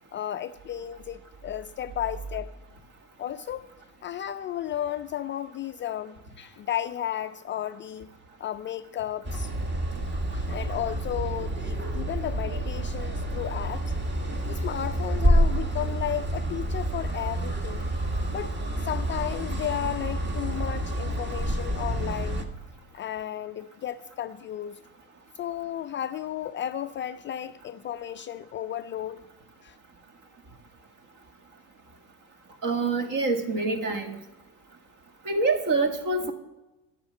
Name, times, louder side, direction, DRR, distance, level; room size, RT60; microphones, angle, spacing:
voice 1, 0.1-2.5 3.2-3.7 4.0-8.1 8.4-9.5 10.3-13.9 14.5-17.8 18.3-22.5 22.9-24.8 25.4-29.2 29.6-29.8, left 11 dB, 30° left, 0.4 m, -34 dB
sound 1, 9.2-22.4, right 1 dB, 25° right, 1.7 m, -28 dB
voice 2, 32.6-34.2 35.3-36.3, right 3 dB, 45° right, 2.0 m, -26 dB
11.0 x 6.7 x 7.9 m
hypercardioid pair, 75°, 43 cm